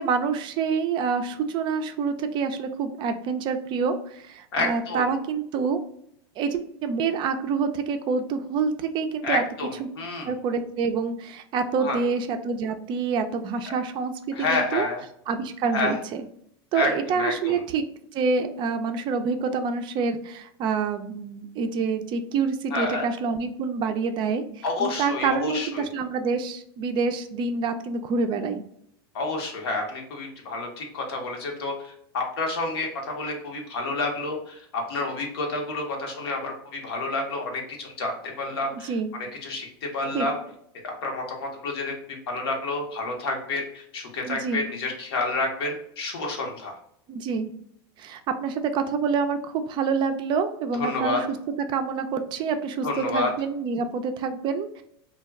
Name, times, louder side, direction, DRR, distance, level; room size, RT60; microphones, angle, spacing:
voice 1, 0.0-5.8 6.4-9.4 9.8-9.9 10.2-14.9 15.3-16.2 16.7-17.8 18.1-28.6 38.7-39.1 40.1-40.3 44.3-44.6 47.1-47.5 48.0-51.3 51.7-54.8, right 5 dB, 35° right, 8 dB, 0.3 m, -27 dB
voice 2, 4.5-5.1 9.2-10.3 11.8-12.0 13.7-13.8 14.3-15.0 15.7-16.0 16.7-17.6 22.7-23.1 24.6-25.9 29.1-39.7 39.9-40.3 40.8-41.9 42.3-46.8 50.7-51.2 52.8-53.3, left 3 dB, 80° left, 1 dB, 0.9 m, -29 dB
2.2 x 2.2 x 3.4 m, 0.69 s
supercardioid pair, 120°, 13 cm